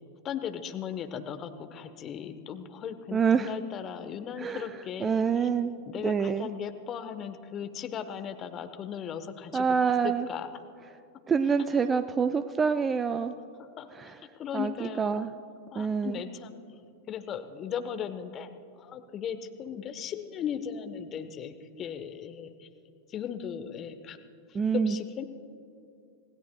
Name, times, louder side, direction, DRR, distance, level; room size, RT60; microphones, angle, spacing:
voice 1, 0.2-5.5 5.9-9.6 10.0-10.5 13.8-15.3 15.7-16.8 17.1-18.5 18.8-22.7 23.1-24.2 24.5-25.2, left 8 dB, 30° left, 9 dB, 1.0 m, -37 dB
voice 2, 3.1-3.5 4.4-6.5 9.5-10.3 11.3-13.4 13.9-14.2 14.5-15.3 15.7-16.2 24.5-25.0, right 6 dB, 20° right, 11 dB, 0.5 m, -27 dB
26.5 x 17.0 x 2.3 m, 2.5 s
figure-of-eight pair, 90°, 0 cm